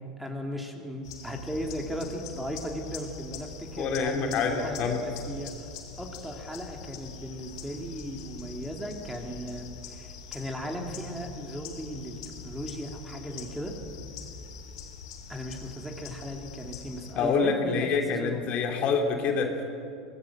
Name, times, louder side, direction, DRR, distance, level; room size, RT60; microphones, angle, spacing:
voice 1, 0.2-5.7 6.0-13.7 15.3-17.7 18.1-18.5, equal, 5° right, 2 dB, 3.3 m, -37 dB
sound 1, 1.0-17.2, left 6 dB, 65° left, 3.6 m, -44 dB
voice 2, 3.8-5.0 17.1-19.6, left 5 dB, 45° left, 3 dB, 3.1 m, -26 dB
25.0 x 19.0 x 7.7 m, 2.5 s
figure-of-eight pair, 80°, 3 cm